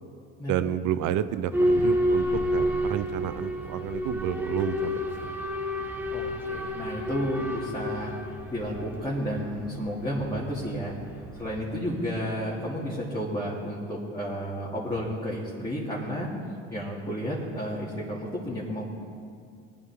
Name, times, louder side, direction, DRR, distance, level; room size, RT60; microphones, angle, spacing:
voice 1, 0.5-2.2 2.5-5.3, right 10 dB, 60° right, 13 dB, 0.7 m, -30 dB
Boat Water vehicle / Alarm, 1.5-12.2, equal, 5° right, 1.9 m, -30 dB
voice 2, 6.1-10.9 11.3-16.3 16.7-18.8, equal, 10° left, -7 dB, 2.6 m, -32 dB
19.5 x 9.2 x 3.7 m, 2.3 s
supercardioid pair, 80°, 35 cm